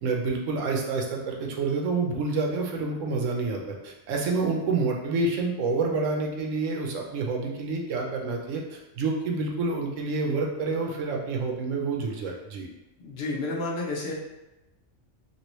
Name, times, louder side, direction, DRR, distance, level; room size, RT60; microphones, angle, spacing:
voice 1, 0.0-12.7, right 3 dB, 85° right, 0 dB, 1.0 m, -28 dB
voice 2, 13.0-14.1, left 2 dB, 60° left, -2 dB, 0.8 m, -30 dB
3.0 x 2.6 x 3.0 m, 0.99 s
omnidirectional pair, 1.3 m